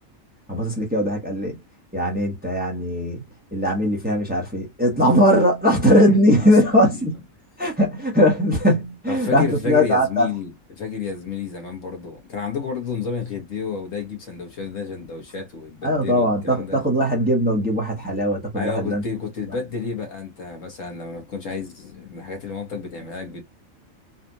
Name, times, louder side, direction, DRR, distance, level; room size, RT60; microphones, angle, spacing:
voice 1, 0.5-1.6 1.9-3.2 3.5-7.2 7.6-10.3 15.8-19.0, equal, 10° right, 1.0 m, -20 dB
voice 2, 5.8-6.5 6.9-7.0 9.1-16.8 18.6-23.4, left 5 dB, 70° left, 1.6 m, -31 dB
4.1 x 2.4 x 2.7 m
omnidirectional pair, 1.4 m